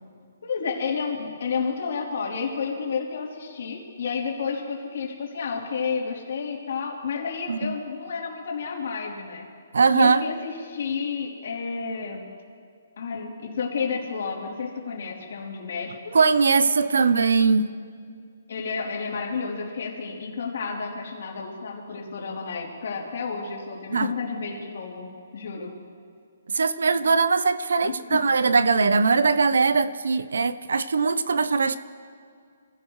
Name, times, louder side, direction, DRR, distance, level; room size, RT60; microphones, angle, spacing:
voice 1, 0.4-9.4 9.9-12.3 13.0-16.2 18.5-25.7 27.8-28.2, left 5 dB, 55° left, -2 dB, 3.4 m, -31 dB
voice 2, 9.7-10.2 16.1-17.7 23.9-24.1 26.5-31.8, right 4 dB, 80° right, 14 dB, 0.8 m, -21 dB
26.5 x 16.0 x 3.2 m, 2.2 s
hypercardioid pair, 170°, 0 cm